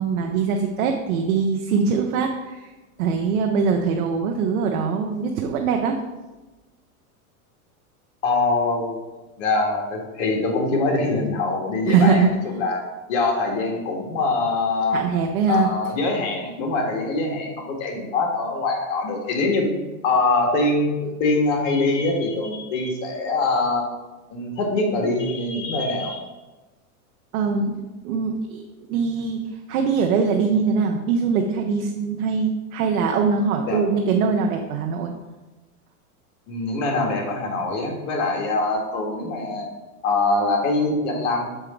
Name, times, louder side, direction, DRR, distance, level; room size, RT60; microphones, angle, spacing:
voice 1, 0.0-2.7 3.0-6.0 11.9-12.3 14.9-15.7 27.3-27.7 28.0-28.6 28.9-35.1, right 5 dB, 70° right, 3 dB, 0.9 m, -22 dB
voice 2, 8.2-9.0 9.4-15.0 15.5-19.7 20.0-23.9 24.3-26.2 33.7-33.8 36.5-39.7 40.0-41.5, left 3 dB, 60° left, 1 dB, 2.0 m, -23 dB
6.8 x 4.8 x 4.5 m, 1.1 s
supercardioid pair, 125°, 43 cm